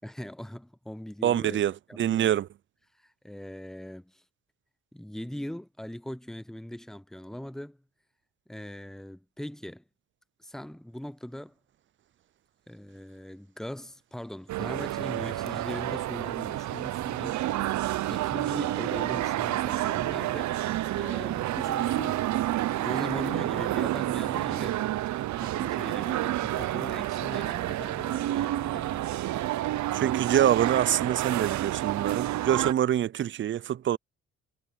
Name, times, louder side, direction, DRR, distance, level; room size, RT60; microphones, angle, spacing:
voice 1, 0.0-1.6 1.9-2.3 3.0-4.2 4.9-7.8 8.5-9.8 10.4-11.5 12.7-17.5 18.1-20.6 20.9-22.3 22.7-24.8 25.4-29.0, left 1 dB, ahead, 0.8 m, -40 dB
voice 2, 1.2-2.5 29.9-34.0, right 11 dB, 40° right, 0.4 m, -25 dB
sound 1, 14.5-32.7, right 14 dB, 70° right, 0.7 m, -29 dB
cardioid pair, 90°, 30 cm